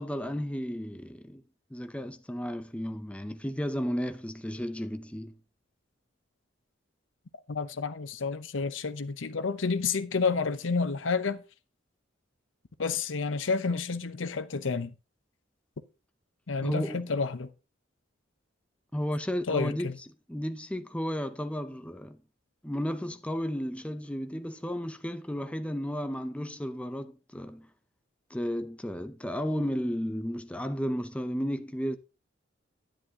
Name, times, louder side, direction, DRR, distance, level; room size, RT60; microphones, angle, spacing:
voice 1, 0.0-1.4 1.7-5.3 16.6-17.0 18.9-19.9 20.3-22.2 22.6-27.7 28.3-32.0, equal, 5° left, 0.6 m, -33 dB
voice 2, 7.5-11.4 12.8-14.9 16.5-17.5 19.5-19.9, left 4 dB, 80° left, 0.7 m, -30 dB
10.0 x 9.9 x 2.8 m
head